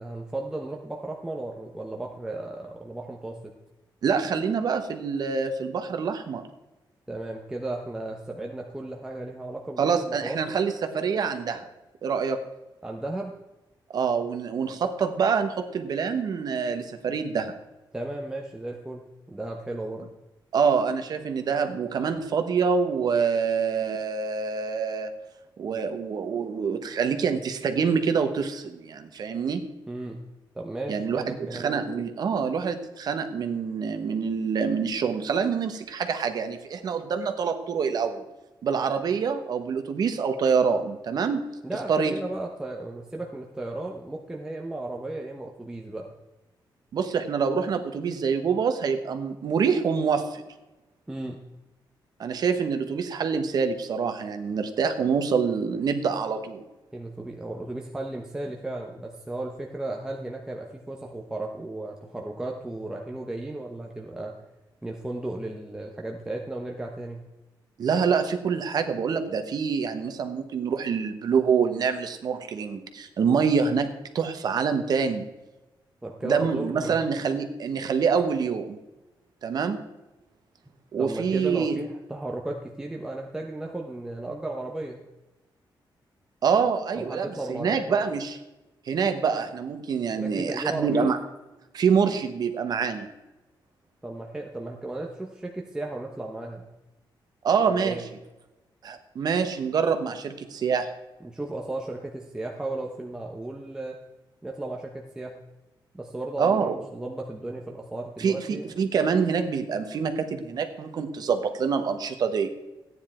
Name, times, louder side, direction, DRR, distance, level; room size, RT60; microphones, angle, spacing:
voice 1, 0.0-3.4 7.1-10.6 12.8-13.3 17.9-20.1 29.9-30.2 30.5-31.7 41.6-46.1 51.1-51.4 56.9-64.3 64.8-67.2 76.0-77.0 81.0-85.0 87.0-88.0 90.1-91.1 94.0-96.7 97.7-98.0 101.2-104.0 104.4-105.4 105.9-108.7, right 2 dB, 10° right, 0 dB, 0.9 m, -35 dB
voice 2, 4.0-6.4 9.8-11.7 12.0-12.4 13.9-17.5 20.5-25.1 25.6-29.6 30.9-38.2 38.6-41.4 41.9-42.1 46.9-50.4 52.2-56.6 67.8-75.3 76.2-78.8 79.4-79.8 80.9-81.8 86.4-88.4 88.9-91.2 91.7-93.1 97.4-98.0 98.8-100.9 106.4-106.8 108.2-112.5, right 6 dB, 55° right, 8 dB, 1.1 m, -26 dB
14.5 x 9.7 x 4.4 m, 1.0 s
wide cardioid pair, 175°, 8 cm